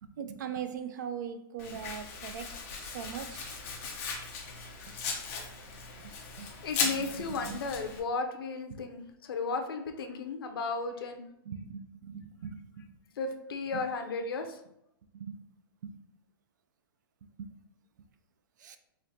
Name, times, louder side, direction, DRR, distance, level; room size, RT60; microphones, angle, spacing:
voice 1, 0.0-2.6 2.8-3.6 6.0-6.1 6.4-6.5 6.8-7.6 8.7-8.8 11.5-12.9 13.7-13.8 15.1-15.4 15.8-16.0 17.4-17.5 18.6-18.8, right 7 dB, 50° right, 10 dB, 0.4 m, -40 dB
Domestic sounds home sounds, 1.6-8.0, left 5 dB, 35° left, 0.7 m, -37 dB
voice 2, 6.4-9.0 9.3-11.2 13.2-14.6, left 4 dB, 75° left, 5 dB, 0.6 m, -34 dB
5.1 x 2.5 x 2.7 m, 0.79 s
hypercardioid pair, 170°, 12 cm